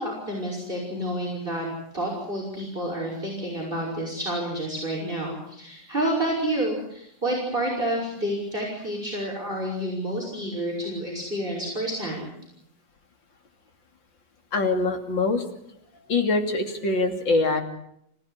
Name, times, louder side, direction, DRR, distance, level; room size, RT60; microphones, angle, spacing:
voice 1, 0.0-1.7 1.9-12.3, right 1 dB, 25° right, -1 dB, 6.1 m, -29 dB
voice 2, 14.5-15.4 16.1-17.6, left 3 dB, 80° left, 5 dB, 3.6 m, -23 dB
26.5 x 16.0 x 10.0 m, 0.74 s
omnidirectional pair, 2.0 m